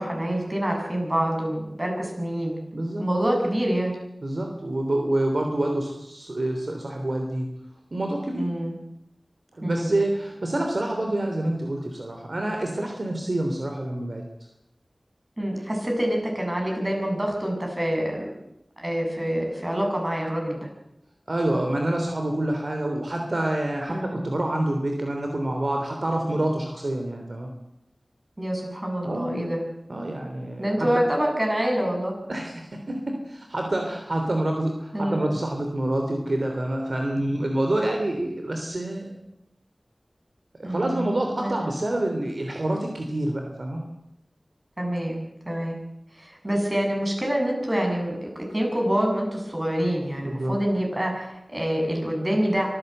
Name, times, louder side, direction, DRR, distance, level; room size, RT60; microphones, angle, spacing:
voice 1, 0.0-2.5 3.0-4.0 8.3-8.7 9.6-10.0 15.4-18.3 18.8-20.7 23.9-24.1 28.4-29.6 30.6-32.1 34.9-35.2 40.6-41.1 41.4-41.5 44.8-45.8 46.2-52.7, equal, 25° right, 1 dB, 7.7 m, -26 dB
voice 2, 2.7-3.0 4.2-7.5 7.9-8.5 9.5-14.2 21.3-27.5 29.0-29.5 29.9-30.9 32.3-39.2 40.6-43.8 50.2-50.6, right 1 dB, 60° right, 3 dB, 3.2 m, -27 dB
24.5 x 15.5 x 8.0 m, 0.82 s
wide cardioid pair, 65°, 0 cm